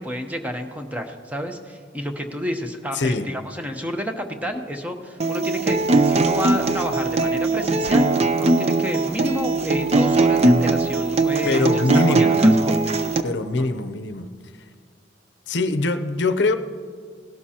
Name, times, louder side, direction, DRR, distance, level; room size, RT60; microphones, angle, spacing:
voice 1, 0.0-12.5 13.6-13.7, equal, 10° right, 4 dB, 0.9 m, -30 dB
voice 2, 2.9-3.3 11.4-12.4 13.2-14.3 15.5-16.6, left 3 dB, 70° left, 9 dB, 0.7 m, -23 dB
Acoustic guitar, 5.2-13.2, right 2 dB, 35° right, 0.5 m, -20 dB
17.5 x 12.0 x 2.9 m, 2.1 s
head